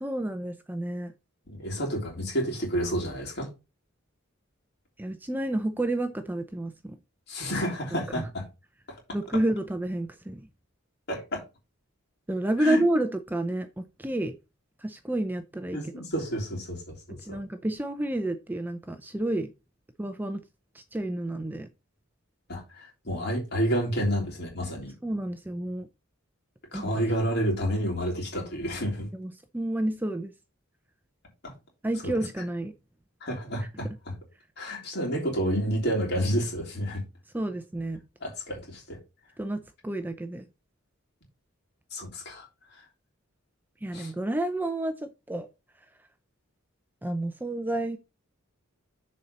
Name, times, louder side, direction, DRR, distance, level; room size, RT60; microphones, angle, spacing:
voice 1, 0.0-1.1 5.0-7.0 8.1-8.2 9.1-10.4 12.3-14.3 14.8-15.8 17.2-19.5 20.0-20.4 20.7-21.7 25.0-25.9 26.7-26.9 29.1-30.3 31.8-32.7 37.3-38.0 39.4-40.4 43.8-45.5 47.0-48.0, right 1 dB, 10° right, 0.5 m, -30 dB
voice 2, 1.5-3.5 7.3-8.4 11.1-11.4 12.6-12.8 15.7-17.4 22.5-24.9 26.7-29.1 32.0-32.1 33.2-33.9 34.6-37.0 38.2-39.0 41.9-42.5 43.9-44.1, equal, 50° left, 3.3 m, -30 dB
6.9 x 4.3 x 5.4 m
head